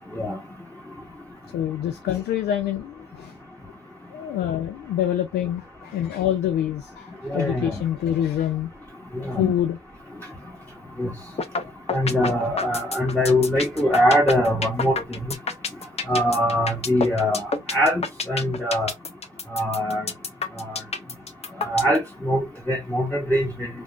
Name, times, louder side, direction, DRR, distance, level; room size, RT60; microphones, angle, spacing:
voice 1, 1.5-3.4 4.1-8.7 9.4-9.8, left 11 dB, 85° left, 0.4 m, -26 dB
voice 2, 7.2-7.8 9.2-9.5 11.0-11.1 11.9-15.3 16.1-18.9 19.5-20.1 20.6-20.8 21.6-23.7, equal, 10° left, 1.0 m, -23 dB
sound 1, 11.4-11.6 11.9-22.0, left 4 dB, 40° left, 0.8 m, -28 dB
3.5 x 2.4 x 2.4 m
cardioid pair, 60°, 16 cm